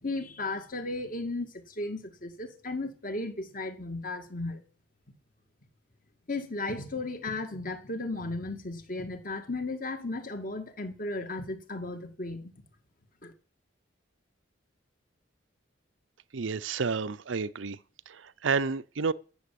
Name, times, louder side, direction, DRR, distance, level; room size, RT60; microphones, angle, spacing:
voice 1, 0.0-4.6 6.3-12.4 13.2-13.3, left 2 dB, 45° left, 2.1 m, -35 dB
voice 2, 16.3-17.8 18.1-19.1, right 5 dB, 75° right, 0.6 m, -30 dB
14.0 x 7.1 x 8.5 m
head